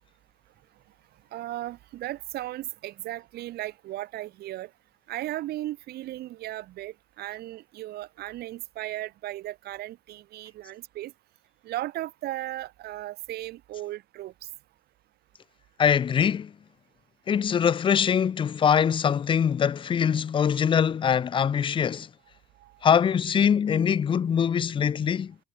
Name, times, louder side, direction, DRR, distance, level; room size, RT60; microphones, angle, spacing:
voice 1, 1.3-4.7 5.1-11.1 11.6-14.5 22.6-22.8, right 15 dB, 70° right, 1.0 m, -36 dB
voice 2, 15.8-16.5 17.3-22.1 22.8-25.3, left 7 dB, 30° left, 0.5 m, -23 dB
cardioid pair, 110°, 17 cm